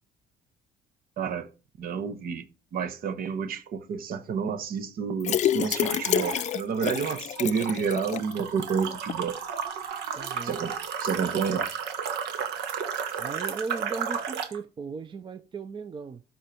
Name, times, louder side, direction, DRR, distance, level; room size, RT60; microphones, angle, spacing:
voice 1, 1.2-1.5 1.8-2.4 2.7-9.4 10.4-11.7, right 6 dB, 60° right, 1.2 m, -30 dB
sound 1, 5.2-8.3 8.7-8.8 9.1-9.2, left 11 dB, 45° left, 0.4 m, -28 dB
sound 2, 5.6-6.6 7.0-14.6, right 7 dB, 80° right, 1.6 m, -33 dB
voice 2, 10.1-10.6 13.2-16.2, right 4 dB, 30° right, 0.6 m, -37 dB
12.5 x 5.6 x 4.5 m
cardioid pair, 110°, 17 cm